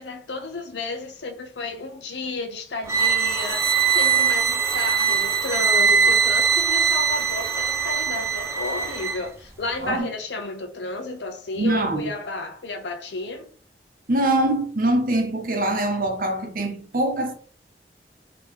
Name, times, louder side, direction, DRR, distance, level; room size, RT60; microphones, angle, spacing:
voice 1, 0.0-13.5, left 3 dB, 80° left, 0.8 m, -32 dB
sound 1, 2.9-9.2, right 6 dB, 15° right, 0.4 m, -21 dB
voice 2, 11.6-12.1 14.1-17.3, right 1 dB, 50° right, 0.7 m, -23 dB
3.1 x 2.9 x 3.6 m
head